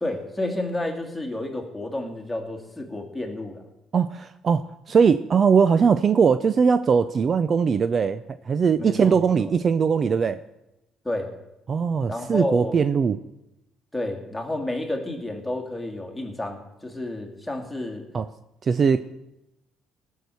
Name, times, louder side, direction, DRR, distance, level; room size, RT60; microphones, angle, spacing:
voice 1, 0.0-3.6 8.8-9.3 11.0-11.3 12.1-12.8 13.9-18.1, left 1 dB, 5° left, 1 dB, 2.3 m, -30 dB
voice 2, 3.9-10.4 11.7-13.2 18.1-18.3 18.6-19.0, right 6 dB, 40° right, 13 dB, 0.4 m, -20 dB
19.0 x 6.5 x 6.9 m, 0.92 s
cardioid pair, 120°, 0 cm